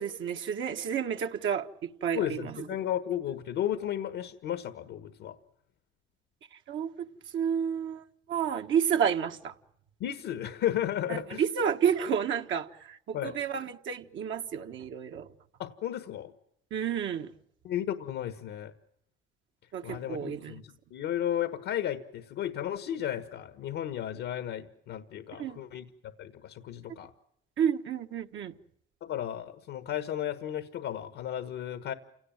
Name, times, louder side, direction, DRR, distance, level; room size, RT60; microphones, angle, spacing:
voice 1, 0.0-2.7 6.5-7.1 7.3-9.5 11.4-15.3 16.7-17.3 19.7-20.6 25.4-25.6 27.6-28.5, right 8 dB, 75° right, 1.6 m, -30 dB
voice 2, 2.1-5.4 10.0-11.4 13.1-13.3 15.6-16.3 17.6-18.7 19.8-27.1 29.0-31.9, left 11 dB, 90° left, 1.4 m, -34 dB
28.5 x 18.0 x 9.1 m
cardioid pair, 90°, 20 cm